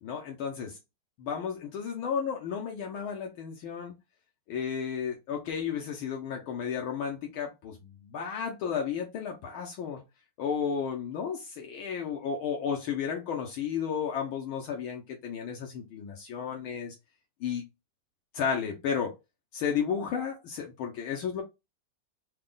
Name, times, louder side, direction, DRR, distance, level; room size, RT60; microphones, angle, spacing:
voice 1, 0.0-0.8 1.2-3.9 4.5-10.0 10.4-17.0 17.4-17.6 18.3-19.2 19.5-21.4, left 7 dB, 75° left, 1.6 m, -33 dB
4.1 x 2.3 x 3.7 m
omnidirectional pair, 2.4 m